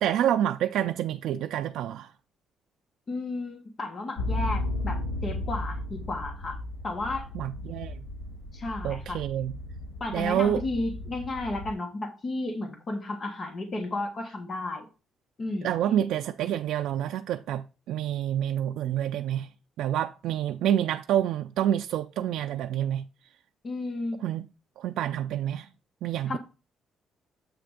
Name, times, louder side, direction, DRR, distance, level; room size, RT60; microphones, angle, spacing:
voice 1, 0.0-2.1 7.3-8.0 8.8-9.5 10.1-10.6 15.6-19.5 19.8-23.0 24.2-24.5 24.8-25.7 26.0-26.4, right 11 dB, 80° right, 0.3 m, -28 dB
voice 2, 3.1-6.6 6.8-7.3 8.5-9.2 10.0-14.9 15.4-15.7 23.6-24.2 26.3-26.4, left 2 dB, 30° left, 1.3 m, -33 dB
sound 1, 4.2-11.7, left 1 dB, 75° left, 2.0 m, -35 dB
7.6 x 3.4 x 6.3 m
cardioid pair, 160°, 0 cm